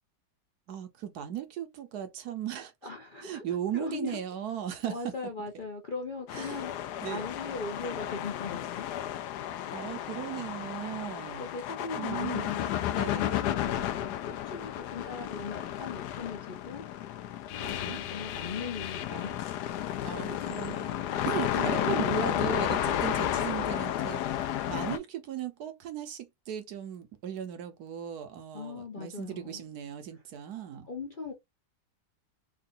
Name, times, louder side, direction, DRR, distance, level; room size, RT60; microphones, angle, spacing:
voice 1, 0.7-2.7 3.2-5.1 6.3-6.7 7.0-7.3 9.7-11.5 11.9-12.5 12.9-13.4 17.6-18.0 20.0-30.9, right 10 dB, 70° right, 1.2 m, -37 dB
voice 2, 2.8-3.4 3.7-4.2 4.9-6.7 7.1-9.0 10.8-11.0 11.4-16.8 17.6-19.4 20.4-20.5 21.6-22.0 22.3-22.5 28.5-29.6 30.9-31.3, left 4 dB, 45° left, 0.6 m, -39 dB
sound 1, 6.3-25.0, left 11 dB, 75° left, 1.1 m, -32 dB
3.7 x 2.3 x 3.8 m
omnidirectional pair, 1.9 m